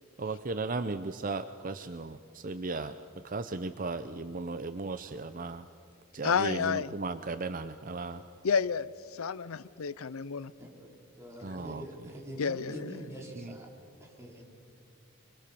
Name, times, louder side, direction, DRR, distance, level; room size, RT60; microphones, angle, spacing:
voice 1, 0.2-3.0 3.2-5.7 6.1-8.2 11.4-12.1 13.4-13.6, right 3 dB, 40° right, 11 dB, 0.6 m, -36 dB
voice 2, 6.2-6.9 8.4-10.5 12.4-12.9, left 6 dB, 80° left, 18 dB, 0.6 m, -30 dB
voice 3, 10.6-10.9 11.2-13.7 14.0-14.4, right 1 dB, 15° right, -2 dB, 4.3 m, -44 dB
25.5 x 24.5 x 6.9 m, 2.2 s
head